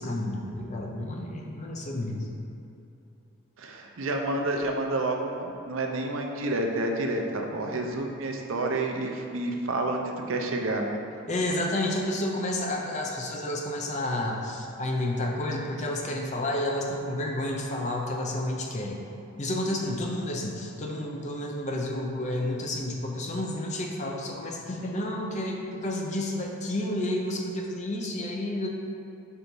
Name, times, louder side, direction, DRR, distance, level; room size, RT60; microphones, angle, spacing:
voice 1, 0.0-2.3 11.3-19.0 19.4-28.7, left 1 dB, 35° left, 0 dB, 0.6 m, -30 dB
voice 2, 3.6-11.0, right 2 dB, 70° right, 2 dB, 0.6 m, -29 dB
4.5 x 3.9 x 5.2 m, 2.9 s
head